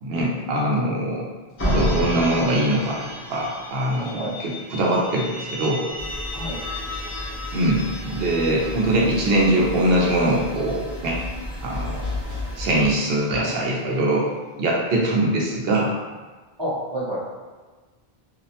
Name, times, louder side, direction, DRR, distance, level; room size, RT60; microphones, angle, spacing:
voice 1, 0.0-1.2 1.7-5.9 7.5-11.2 11.6-12.1 12.6-14.3 14.6-15.9, right 1 dB, 75° right, -3 dB, 0.8 m, -22 dB
sound 1, 1.6-14.1, left 2 dB, 70° left, 0.8 m, -38 dB
Slam, 1.6-3.5, equal, 25° left, 0.3 m, -25 dB
voice 2, 3.9-4.3 6.3-6.6 16.6-17.2, equal, 30° right, -9 dB, 0.7 m, -29 dB
sound 2, 6.0-13.0, left 1 dB, 45° right, 1.1 m, -34 dB
2.4 x 2.1 x 2.7 m, 1.3 s
omnidirectional pair, 1.0 m